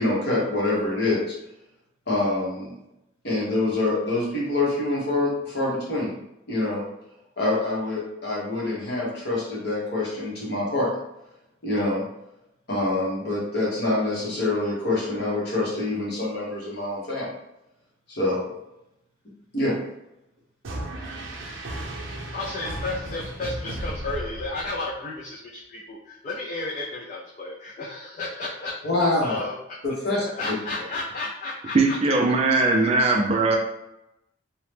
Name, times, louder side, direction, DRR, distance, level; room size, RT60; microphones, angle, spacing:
voice 1, 0.0-1.3 2.1-2.7 3.2-6.1 6.5-6.9 7.4-10.9 11.6-12.0 12.7-17.3 18.1-18.5 19.5-19.7 28.8-29.4 29.8-30.2, left 2 dB, 55° left, -5 dB, 1.0 m, -25 dB
sound 1, 20.6-24.9, right 1 dB, 90° right, 0.6 m, -35 dB
voice 2, 22.3-29.6 30.1-32.0 32.5-32.9, left 2 dB, 40° left, -4 dB, 0.4 m, -33 dB
voice 3, 31.7-33.6, right 3 dB, 30° right, 1 dB, 0.3 m, -20 dB
2.8 x 2.1 x 3.2 m, 0.87 s
head